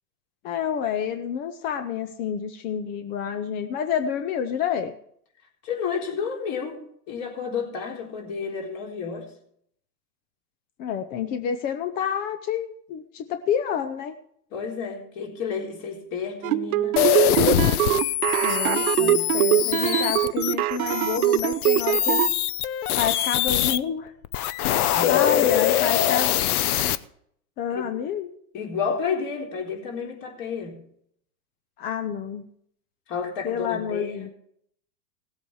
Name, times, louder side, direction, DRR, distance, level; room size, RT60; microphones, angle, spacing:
voice 1, 0.4-4.9 10.8-14.1 18.4-22.2 23.0-24.1 25.1-26.3 27.6-28.3 31.8-32.4 33.4-34.3, left 8 dB, 20° left, 9 dB, 0.4 m, -29 dB
voice 2, 5.6-6.8 7.1-9.3 14.5-17.1 19.0-19.3 24.9-25.6 27.7-27.9 28.5-30.8 33.1-34.3, left 6 dB, 40° left, 0 dB, 4.0 m, -31 dB
sound 1, 16.4-22.3, right 15 dB, 60° right, 0.8 m, -22 dB
sound 2, 17.0-23.8 24.2-27.0, left 12 dB, 65° left, 0.8 m, -23 dB
17.5 x 8.1 x 4.7 m, 0.68 s
hypercardioid pair, 130°, 48 cm